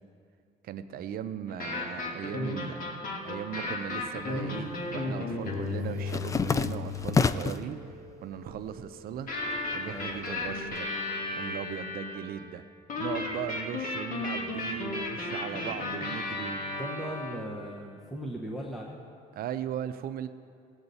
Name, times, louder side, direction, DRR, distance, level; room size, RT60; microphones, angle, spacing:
voice 1, 0.6-2.9 3.2-7.8 8.2-9.3 9.7-10.9 11.4-12.6 13.0-16.8 19.4-20.3, right 9 dB, 60° right, 11 dB, 0.6 m, -38 dB
sound 1, 1.5-7.3 9.3-12.2 12.9-17.4, left 2 dB, 55° left, 1.8 m, -34 dB
sound 2, 3.8-4.6 4.9-7.7 8.2-8.8 9.1-10.8, left 5 dB, 20° left, 0.3 m, -30 dB
sound 3, 4.8-12.7, right 1 dB, 35° right, 1.3 m, -51 dB
voice 2, 16.8-19.0, equal, ahead, -2 dB, 1.0 m, -38 dB
17.0 x 8.0 x 4.1 m, 2.4 s
cardioid pair, 110°, 17 cm